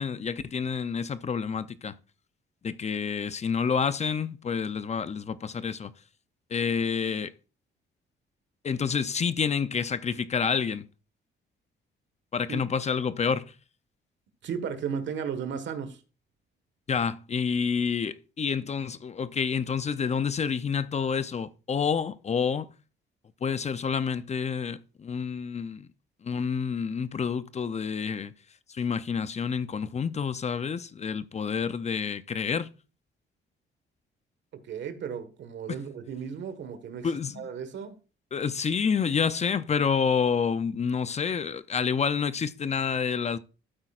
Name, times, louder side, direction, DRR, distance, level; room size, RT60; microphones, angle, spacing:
voice 1, 0.0-1.9 2.6-5.9 6.5-7.3 8.6-10.9 12.3-13.5 16.9-22.7 23.4-25.9 26.2-28.3 28.7-32.7 37.0-37.5 38.3-43.4, left 6 dB, 35° left, 0.5 m, -28 dB
voice 2, 14.4-16.0 34.7-37.1 37.3-38.0, right 7 dB, 65° right, 1.5 m, -34 dB
12.5 x 8.5 x 2.4 m
cardioid pair, 90°, 20 cm